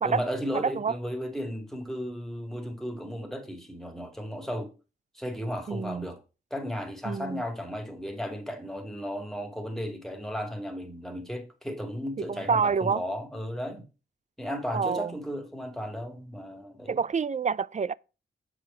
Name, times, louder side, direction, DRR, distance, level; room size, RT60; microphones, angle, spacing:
voice 1, 0.0-4.7 5.1-6.2 6.5-13.9 14.4-17.0, equal, ahead, 2.4 m, -35 dB
voice 2, 0.5-0.9 5.7-6.1 7.0-7.4 12.3-13.0 14.7-15.1 16.9-17.9, right 5 dB, 35° right, 0.4 m, -27 dB
7.5 x 5.1 x 5.5 m
cardioid pair, 55°, 21 cm